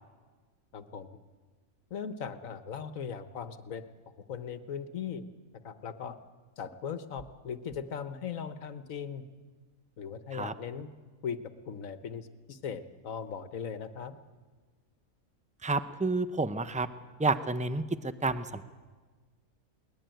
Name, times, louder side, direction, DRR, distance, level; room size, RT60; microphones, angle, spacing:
voice 1, 0.7-1.1 1.9-3.8 4.3-5.2 5.6-6.2 6.6-9.2 10.0-10.9 11.2-11.4 11.7-14.2, left 7 dB, 75° left, 11 dB, 1.5 m, -38 dB
voice 2, 15.6-16.9 17.2-18.6, right 3 dB, 10° right, 12 dB, 0.4 m, -30 dB
21.5 x 19.5 x 9.1 m, 1.4 s
omnidirectional pair, 1.4 m